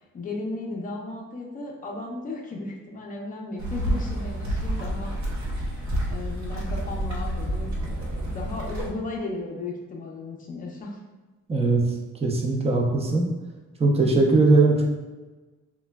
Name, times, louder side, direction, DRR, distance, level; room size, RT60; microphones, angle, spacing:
voice 1, 0.1-5.2 5.6-11.0, left 2 dB, 25° left, -1 dB, 0.5 m, -35 dB
sound 1, 3.6-8.9, right 1 dB, 65° right, 0.7 m, -29 dB
voice 2, 11.5-11.8 12.2-13.3 13.8-14.8, right 3 dB, 20° right, 0 dB, 0.5 m, -20 dB
3.1 x 2.2 x 2.2 m, 1.2 s
cardioid pair, 90°, 30 cm